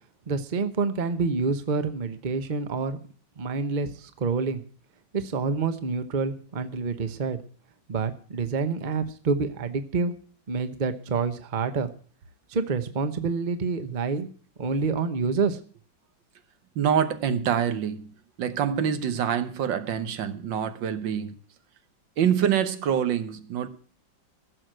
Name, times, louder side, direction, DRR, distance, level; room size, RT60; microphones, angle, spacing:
voice 1, 0.3-3.0 3.4-4.6 5.1-7.4 7.9-10.1 10.5-11.9 12.5-14.3 14.6-15.6, right 4 dB, 35° right, 0.9 m, -27 dB
voice 2, 16.7-18.1 18.4-21.4 22.2-23.7, right 8 dB, 75° right, 1.7 m, -25 dB
15.5 x 6.6 x 7.6 m
omnidirectional pair, 2.0 m